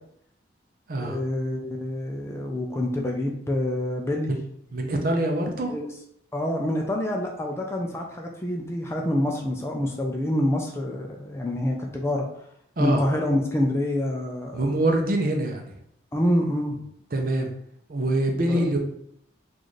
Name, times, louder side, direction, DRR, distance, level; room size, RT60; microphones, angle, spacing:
voice 1, 1.0-4.3 5.7-5.9 6.3-12.3 12.8-14.8 16.1-16.8 18.5-18.6, left 1 dB, 15° left, 0 dB, 0.4 m, -27 dB
voice 2, 4.7-5.8 12.8-13.0 14.5-15.7 17.1-17.5 17.9-18.8, right 1 dB, 50° right, 3 dB, 0.6 m, -24 dB
4.0 x 2.5 x 3.1 m, 0.71 s
head